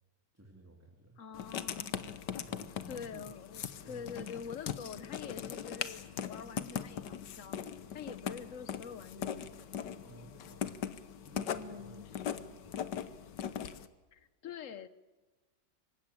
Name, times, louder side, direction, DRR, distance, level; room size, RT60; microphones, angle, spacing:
voice 1, 0.3-1.2 2.3-3.3 3.8-4.2 10.0-10.7 11.2-13.1, right 1 dB, 10° right, 0 dB, 2.9 m, -55 dB
voice 2, 1.2-2.1 2.9-7.6 7.9-9.9 11.5-12.6 14.1-14.9, left 7 dB, 50° left, 14 dB, 1.3 m, -46 dB
Writing, 1.3-13.9, left 8 dB, 75° left, 1.6 m, -40 dB
26.0 x 16.0 x 9.8 m, 1.2 s
omnidirectional pair, 1.9 m